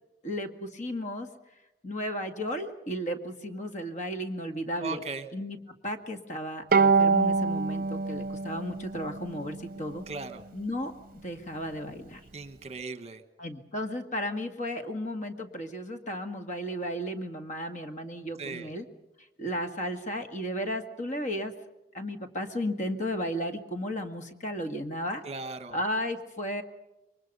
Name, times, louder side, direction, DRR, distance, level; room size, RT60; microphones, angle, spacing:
voice 1, 0.2-1.3 1.8-5.0 5.3-5.6 5.8-10.0 10.5-12.2 13.4-18.8 19.4-21.5 21.9-25.2 25.7-26.6, equal, 45° left, 6 dB, 2.0 m, -34 dB
voice 2, 4.8-5.3 10.1-10.4 12.3-13.2 18.4-18.7 25.2-25.8, right 3 dB, 40° right, 10 dB, 1.3 m, -37 dB
Bowed string instrument, 6.7-10.0, right 4 dB, 55° right, 0.7 m, -26 dB
28.0 x 23.0 x 5.5 m, 0.99 s
head